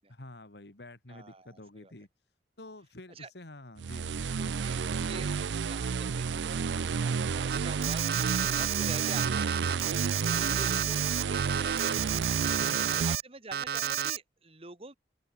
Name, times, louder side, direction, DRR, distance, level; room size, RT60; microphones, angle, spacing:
voice 1, 0.1-2.1 2.6-4.5 12.6-13.1, left 1 dB, 70° left, 2.3 m, -49 dB
voice 2, 1.1-1.9 3.2-3.3 4.6-9.9 10.2-12.4 13.1-14.9, right 3 dB, 35° right, 2.2 m, -47 dB
sound 1, 3.8-13.2, right 5 dB, 90° right, 0.5 m, -31 dB
Alarm, 7.5-13.2 13.5-14.2, right 10 dB, 60° right, 0.7 m, -31 dB
open air
head